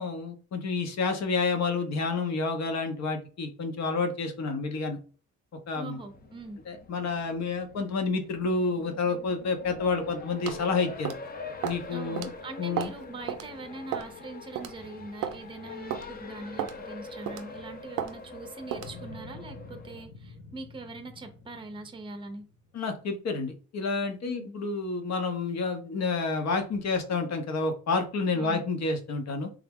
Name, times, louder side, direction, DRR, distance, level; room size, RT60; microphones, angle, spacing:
voice 1, 0.0-5.0 5.7-6.0 6.7-11.1 11.6-12.3 12.6-12.9 22.7-29.5, left 4 dB, 60° left, 6 dB, 0.8 m, -29 dB
voice 2, 5.8-6.6 11.9-22.5 24.2-24.5 28.3-28.6, right 3 dB, 15° right, 6 dB, 0.6 m, -42 dB
Race car auto racing, 6.0-20.1, left 4 dB, 30° left, 0.6 m, -45 dB
sound 1, 10.5-10.6 11.0-11.3 11.6-11.8 12.2-12.3 12.8-13.0 13.3-13.4 13.9-14.2 14.6-14.7 15.2-15.4 15.9-16.1 16.6-16.8 17.3-17.5 18.0-18.1 18.7-18.9, right 10 dB, 90° right, 0.5 m, -33 dB
sound 2, 18.8-23.0, left 3 dB, 80° left, 1.7 m, -48 dB
3.5 x 2.0 x 3.5 m, 0.39 s
cardioid pair, 90°, 30 cm